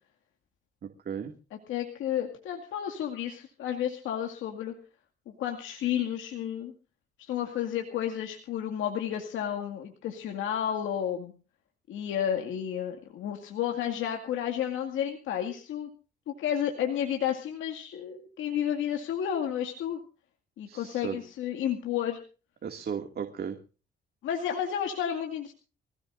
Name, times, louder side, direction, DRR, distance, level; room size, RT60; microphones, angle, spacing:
voice 1, 0.8-1.3 20.7-21.2 22.6-23.6, right 7 dB, 50° right, 5 dB, 2.3 m, -35 dB
voice 2, 1.7-4.7 5.3-6.7 7.2-11.3 11.9-15.9 16.3-20.0 20.6-22.2 24.2-25.5, left 9 dB, 85° left, 3 dB, 2.2 m, -31 dB
24.5 x 17.0 x 2.6 m, 0.36 s
cardioid pair, 90°, 20 cm